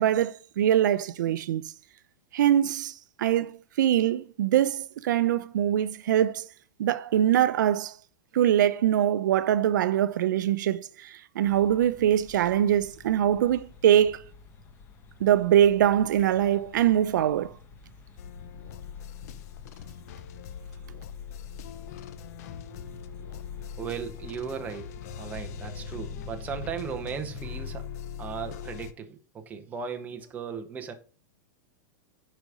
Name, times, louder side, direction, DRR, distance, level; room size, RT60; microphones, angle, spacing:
voice 1, 0.0-1.6 2.3-6.5 6.8-8.0 8.3-14.2 15.2-17.6, right 11 dB, 85° right, 0.6 m, -23 dB
sound 1, 11.4-27.8, left 3 dB, 25° left, 1.1 m, -47 dB
sound 2, 18.2-28.9, left 9 dB, 55° left, 0.7 m, -42 dB
voice 2, 23.8-27.9 28.2-30.9, right 7 dB, 15° right, 1.0 m, -37 dB
9.0 x 5.1 x 4.9 m
supercardioid pair, 160°, 10 cm